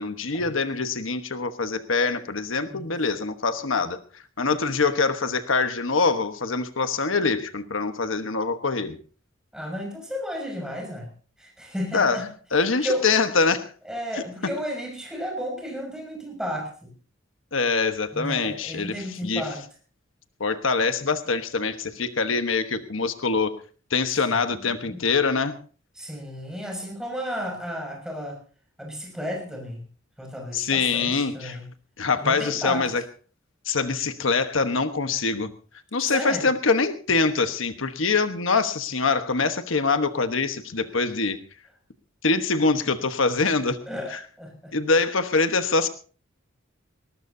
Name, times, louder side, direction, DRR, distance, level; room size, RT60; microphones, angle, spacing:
voice 1, 0.0-4.0 4.4-9.0 11.9-12.2 12.5-13.7 17.5-19.0 19.2-19.4 20.4-23.5 23.9-25.5 30.5-31.6 32.0-33.0 33.7-35.5 35.9-41.4 42.2-43.8 44.1-44.2 44.7-45.9, left 4 dB, 80° left, 9 dB, 1.2 m, -24 dB
voice 2, 9.5-11.1 11.4-12.3 12.8-13.1 13.8-16.9 18.1-19.6 24.3-25.0 26.0-28.4 28.8-29.9 30.2-31.7 32.2-32.9 36.0-36.5 43.9-44.7, equal, 5° right, 2 dB, 6.2 m, -33 dB
20.5 x 19.0 x 2.7 m, 0.39 s
head